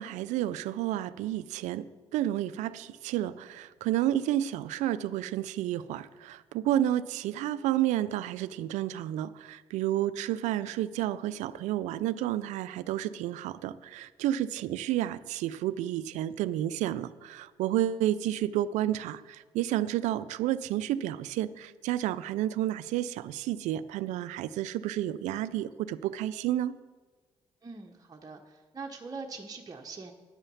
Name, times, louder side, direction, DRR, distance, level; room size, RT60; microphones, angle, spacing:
voice 1, 0.0-1.9 2.1-26.7, right 12 dB, 75° right, 16 dB, 0.4 m, -31 dB
voice 2, 27.6-30.1, right 4 dB, 30° right, 1 dB, 1.0 m, -42 dB
9.9 x 5.6 x 7.0 m, 1.4 s
hypercardioid pair, 50°, 12 cm